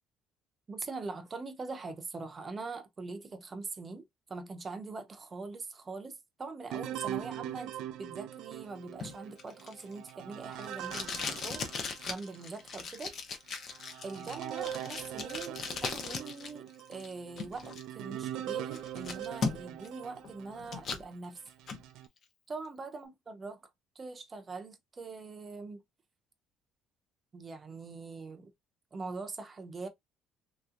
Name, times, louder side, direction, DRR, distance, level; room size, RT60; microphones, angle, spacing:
voice 1, 0.7-7.7 8.0-13.1 14.0-21.4 22.5-23.7 24.0-25.8 27.3-28.5 28.9-29.9, right 3 dB, 25° right, 0.6 m, -43 dB
sound 1, 6.7-12.5 13.0-13.1 13.7-20.9 21.5-22.1, right 11 dB, 75° right, 0.3 m, -42 dB
Packing tape duct tape, 9.0-16.5 16.8-17.8 18.3-18.4 18.7-19.9 20.2-21.1 21.5-21.8, left 5 dB, 40° left, 0.7 m, -38 dB
3.1 x 2.8 x 2.4 m
cardioid pair, 150°, 0 cm